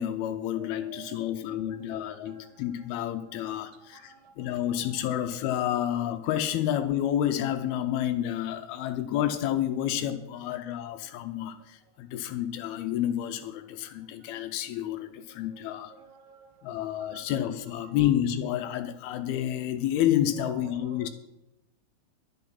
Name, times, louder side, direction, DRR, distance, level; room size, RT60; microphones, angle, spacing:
voice 1, 0.0-15.9 16.6-21.1, left 11 dB, 80° left, 9 dB, 2.6 m, -29 dB
voice 2, 0.5-2.6 3.5-3.6 3.9-4.6 14.2-14.3 15.3-17.4 17.8-18.1 20.7-21.1, right 8 dB, 90° right, 6 dB, 3.4 m, -53 dB
11.0 x 11.0 x 5.8 m, 0.88 s
omnidirectional pair, 4.7 m